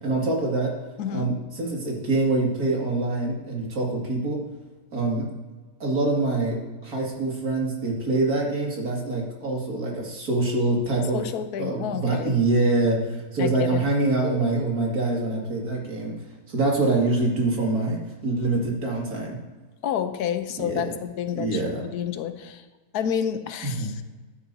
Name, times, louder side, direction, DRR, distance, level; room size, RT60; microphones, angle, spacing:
voice 1, 0.0-0.7 1.1-4.4 4.9-5.3 5.8-6.6 6.8-11.2 11.6-16.1 16.5-19.4 20.6-20.8 21.3-21.8 23.6-23.9, right 2 dB, 70° right, -2 dB, 2.7 m, -25 dB
voice 2, 1.0-1.3 11.1-12.3 13.4-13.8 19.8-22.6 22.9-24.0, left 9 dB, 85° left, 10 dB, 1.2 m, -29 dB
12.5 x 9.8 x 2.7 m, 1.3 s
omnidirectional pair, 1.6 m